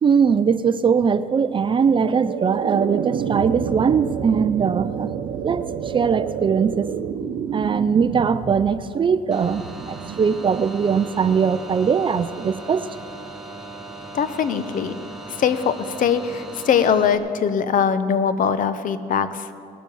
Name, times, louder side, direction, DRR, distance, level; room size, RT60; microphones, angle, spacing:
voice 1, 0.0-5.1 5.4-6.9 7.5-12.9, right 6 dB, 30° right, 14 dB, 0.4 m, -21 dB
sound 1, 1.7-12.8, right 8 dB, 70° right, 0.8 m, -30 dB
sound 2, 9.3-17.2, right 2 dB, ahead, 1.6 m, -38 dB
voice 2, 14.1-14.9 15.4-15.7 16.0-19.3, left 7 dB, 50° left, 12 dB, 0.8 m, -21 dB
19.5 x 7.3 x 7.0 m, 2.6 s
cardioid pair, 110°, 17 cm